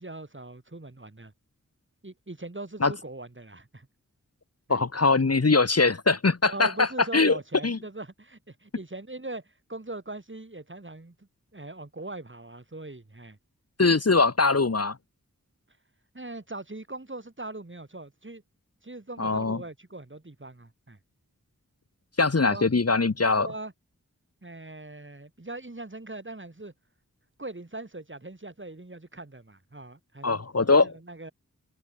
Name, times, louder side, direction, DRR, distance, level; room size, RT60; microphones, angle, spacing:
voice 1, 0.0-1.3 2.0-3.9 4.7-4.8 6.4-13.4 16.1-18.4 18.8-21.0 22.5-22.7 23.2-23.7 24.4-26.7 27.4-31.3, right 2 dB, 35° right, 5.8 m, -41 dB
voice 2, 4.7-7.4 7.6-7.8 13.8-15.0 19.2-19.6 22.2-23.5 30.2-30.9, left 3 dB, 50° left, 1.5 m, -22 dB
wide cardioid pair, 55°, 32 cm